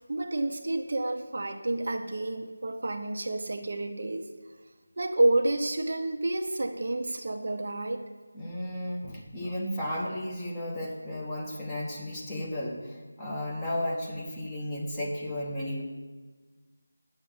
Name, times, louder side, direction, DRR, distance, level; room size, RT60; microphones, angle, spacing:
voice 1, 0.1-4.3 5.0-8.0 9.4-9.6, right 2 dB, 45° right, 5 dB, 0.8 m, -29 dB
voice 2, 8.3-15.8, left 1 dB, 10° left, -4 dB, 1.3 m, -34 dB
9.3 x 7.1 x 7.7 m, 1.3 s
figure-of-eight pair, 165°, 0 cm